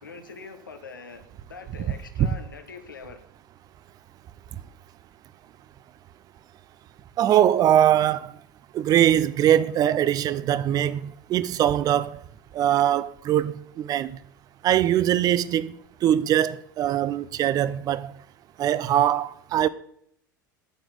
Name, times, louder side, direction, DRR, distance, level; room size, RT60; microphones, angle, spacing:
voice 1, 0.0-3.2, left 5 dB, 80° left, 1.4 m, -43 dB
voice 2, 7.2-8.3 8.7-12.2 12.5-14.2 14.6-15.7 16.0-18.1 18.6-19.7, right 11 dB, 35° right, 0.6 m, -22 dB
9.1 x 6.0 x 8.0 m
figure-of-eight pair, 80°, 11 cm